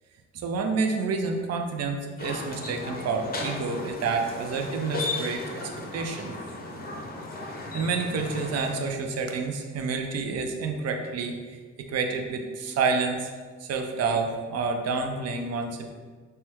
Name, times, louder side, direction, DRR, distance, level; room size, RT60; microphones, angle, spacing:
voice 1, 0.3-5.6 5.9-6.3 7.5-11.3 11.9-13.3 13.6-15.9, right 4 dB, 55° right, 4 dB, 0.4 m, -29 dB
sound 1, 2.2-8.7, left 2 dB, 30° left, 0.6 m, -35 dB
3.3 x 2.2 x 2.9 m, 1.5 s
cardioid pair, 90°, 31 cm